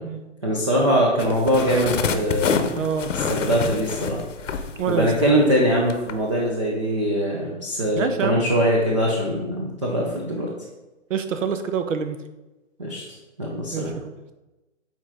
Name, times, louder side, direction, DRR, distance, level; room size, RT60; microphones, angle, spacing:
voice 1, 0.4-2.7 3.1-4.2 4.9-10.5 12.8-13.0 13.4-13.9, equal, 25° right, -4 dB, 0.5 m, -22 dB
sound 1, 1.2-5.5 5.9-6.1, left 6 dB, 75° left, 0.8 m, -27 dB
voice 2, 2.7-3.1 4.8-5.4 7.9-8.4 11.1-12.2 13.7-14.1, right 6 dB, 80° right, 9 dB, 0.9 m, -26 dB
7.2 x 4.4 x 3.5 m, 1.1 s
hypercardioid pair, 175°, 38 cm